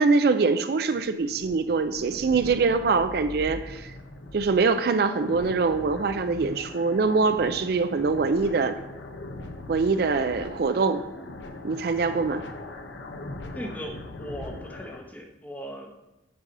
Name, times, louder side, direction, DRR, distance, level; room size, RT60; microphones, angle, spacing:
voice 1, 0.0-3.9 4.3-8.7 9.7-11.0 11.6-12.4, right 4 dB, 55° right, 10 dB, 0.4 m, -23 dB
sound 1, 0.8-15.0, left 2 dB, 80° left, 0.8 m, -41 dB
voice 2, 13.5-15.9, equal, 10° left, 2 dB, 0.8 m, -38 dB
8.6 x 4.1 x 5.3 m, 0.96 s
head